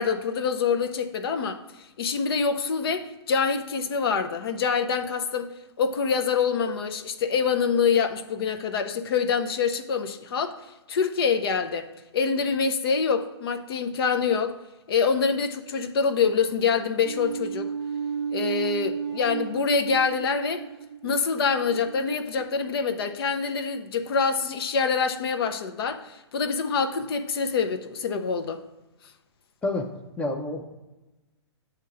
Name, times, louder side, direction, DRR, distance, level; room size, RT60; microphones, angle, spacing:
voice 1, 0.0-5.5 5.8-10.6 10.9-11.9 12.1-14.6 14.9-17.7 18.3-20.6 21.0-28.6, left 5 dB, 55° left, 7 dB, 0.6 m, -25 dB
sound 1, 17.0-23.4, right 6 dB, 65° right, 0.4 m, -34 dB
voice 2, 29.6-30.7, left 2 dB, 10° left, 2 dB, 0.5 m, -29 dB
8.0 x 2.9 x 4.8 m, 1.1 s
hypercardioid pair, 130°, 14 cm